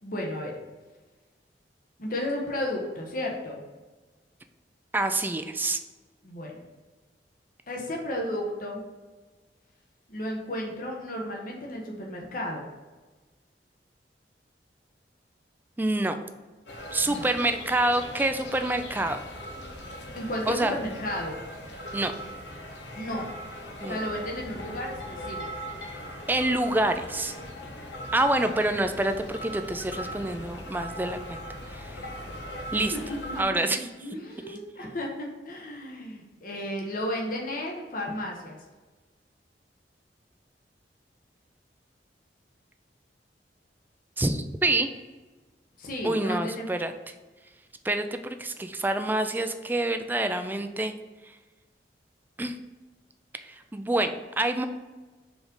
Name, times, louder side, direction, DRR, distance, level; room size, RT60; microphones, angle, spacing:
voice 1, 0.0-0.5 2.0-3.7 6.2-6.6 7.7-8.8 10.1-12.7 17.0-17.3 20.1-21.4 22.9-23.3 23.9-25.6 28.7-28.8 32.7-38.6 45.8-46.7, left 1 dB, 50° left, 0 dB, 1.0 m, -33 dB
voice 2, 4.9-5.8 15.8-16.2 16.9-19.2 20.5-20.7 21.9-22.1 23.8-24.0 26.3-27.3 28.1-31.4 31.7-32.0 32.7-32.9 33.4-33.8 34.5-34.6 44.2-44.9 46.0-46.9 47.8-50.9 52.4-52.6 53.5-54.7, right 2 dB, 10° right, 8 dB, 0.3 m, -27 dB
sound 1, 16.7-33.4, equal, 85° left, 0.9 m, -39 dB
5.0 x 3.9 x 5.2 m, 1.3 s
head